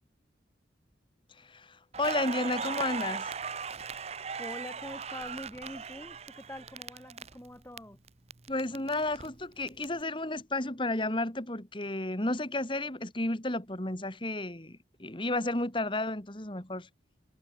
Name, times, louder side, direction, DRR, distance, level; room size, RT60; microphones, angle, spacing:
voice 1, 1.4-3.3 8.5-16.9, left 2 dB, 25° left, 2.5 m, -32 dB
Crackle, 1.9-7.8 8.1-9.8, right 5 dB, 35° right, 0.9 m, -38 dB
voice 2, 4.4-8.0, left 1 dB, 10° left, 4.7 m, -44 dB
head